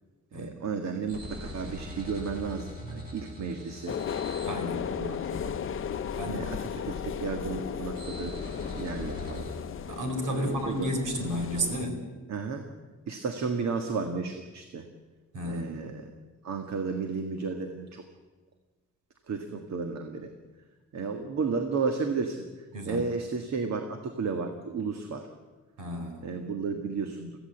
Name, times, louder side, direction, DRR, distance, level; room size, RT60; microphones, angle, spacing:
voice 1, 0.3-4.0 4.9-5.6 6.3-8.4 8.7-9.5 10.3-10.9 12.3-12.7 13.1-14.9 15.4-16.1 16.4-18.0 19.3-20.3 20.9-25.3 26.2-27.4, right 5 dB, 60° right, 5 dB, 1.8 m, -33 dB
sound 1, 1.1-9.6, left 1 dB, 30° right, 7.9 m, -42 dB
sound 2, 3.9-11.8, left 8 dB, 45° left, 0.6 m, -35 dB
voice 2, 4.4-4.9 6.1-6.5 9.9-12.0 15.3-15.8 22.7-23.0 25.8-26.2, equal, 85° right, 5 dB, 4.8 m, -32 dB
24.5 x 16.0 x 8.0 m, 1.3 s
wide cardioid pair, 160°, 30 cm